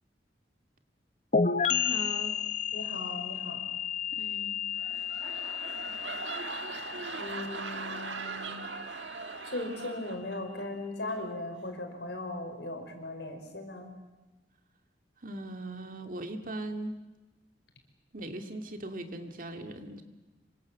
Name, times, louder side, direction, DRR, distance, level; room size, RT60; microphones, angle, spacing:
sound 1, 1.3-8.9, left 6 dB, 40° left, 1.0 m, -32 dB
voice 1, 1.7-2.4 4.1-4.6 15.2-16.9 18.1-20.0, right 2 dB, 50° right, 6 dB, 2.2 m, -39 dB
voice 2, 2.7-3.6 7.2-8.6 9.4-13.9, left 2 dB, 75° left, 4 dB, 5.1 m, -38 dB
sound 2, 4.7-10.7 11.0-11.3, right 4 dB, 90° right, 1.6 m, -40 dB
26.0 x 25.0 x 7.5 m, 1.1 s
head